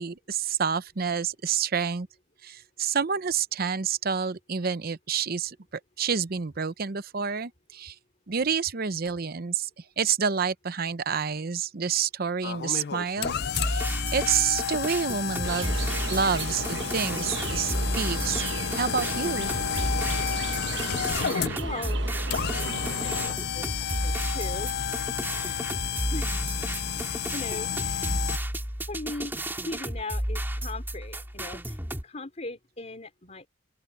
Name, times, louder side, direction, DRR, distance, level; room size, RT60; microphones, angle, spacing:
voice 1, 0.0-2.1 2.4-5.6 6.0-8.0 8.3-19.5, right 6 dB, 50° right, 0.7 m, -29 dB
sound 1, 12.4-28.4, left 8 dB, 55° left, 0.5 m, -31 dB
sound 2, 13.4-32.0, right 1 dB, 10° right, 2.8 m, -32 dB
sound 3, 15.4-23.3, right 5 dB, 65° right, 1.2 m, -36 dB
voice 2, 21.6-22.0 22.5-23.7 23.9-24.7 25.2-25.6 26.1-26.3 27.0-28.2 28.9-31.8 32.0-33.5, left 2 dB, 35° left, 3.3 m, -39 dB
open air
head